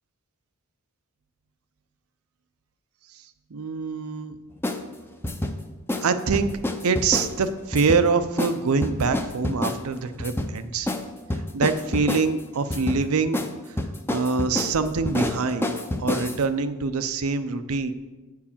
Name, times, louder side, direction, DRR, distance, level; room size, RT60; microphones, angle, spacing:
voice 1, 3.5-4.3 6.0-6.5 6.8-10.9 11.5-13.5 14.1-17.9, right 4 dB, 70° right, 11 dB, 0.6 m, -24 dB
sound 1, 4.6-4.8 5.2-5.5 5.9-6.1 6.3-7.3 7.7-8.1 8.4-8.5 8.8-9.8 10.2-10.5 10.9-11.0 11.3-12.3 12.7-13.0 13.3-13.5 13.8-16.4, left 1 dB, 10° left, 0.5 m, -27 dB
8.4 x 4.7 x 7.1 m, 1.2 s
head